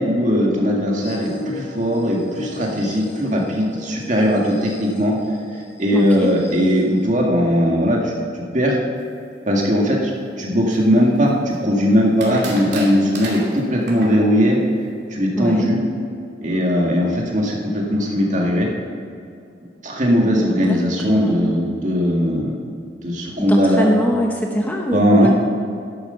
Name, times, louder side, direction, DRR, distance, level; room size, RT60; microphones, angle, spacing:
voice 1, 0.0-5.1 5.8-8.8 9.5-10.1 10.4-14.6 15.1-15.8 16.4-18.7 19.8-22.5 23.0-23.9 24.9-25.3, equal, 45° right, -1 dB, 1.9 m, -19 dB
sound 1, 1.0-7.0, left 1 dB, 70° left, 2.7 m, -36 dB
voice 2, 5.9-6.3 15.4-15.7 20.4-21.5 23.4-25.3, equal, 10° left, 1 dB, 0.8 m, -22 dB
sound 2, 10.7-11.5 12.2-14.2, right 3 dB, 85° right, 2.5 m, -33 dB
11.0 x 8.2 x 5.6 m, 2.5 s
head